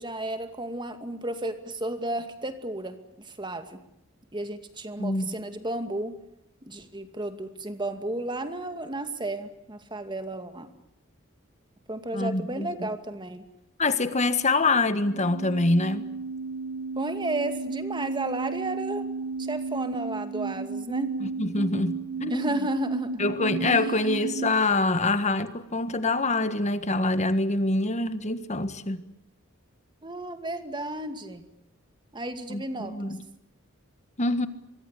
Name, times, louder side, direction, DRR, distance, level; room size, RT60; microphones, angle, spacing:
voice 1, 0.0-3.8 4.3-6.2 6.6-10.7 11.9-13.4 17.0-19.1 19.4-21.2 22.3-23.3 23.6-24.2 30.0-31.4 32.1-33.1, right 1 dB, 25° right, 2.3 m, -33 dB
voice 2, 5.0-5.3 12.1-12.9 13.8-16.0 21.2-22.5 23.2-29.0 32.5-33.2 34.2-34.5, left 2 dB, 35° left, 1.5 m, -25 dB
sound 1, 15.0-24.6, right 4 dB, 80° right, 1.1 m, -33 dB
25.5 x 23.5 x 8.3 m
head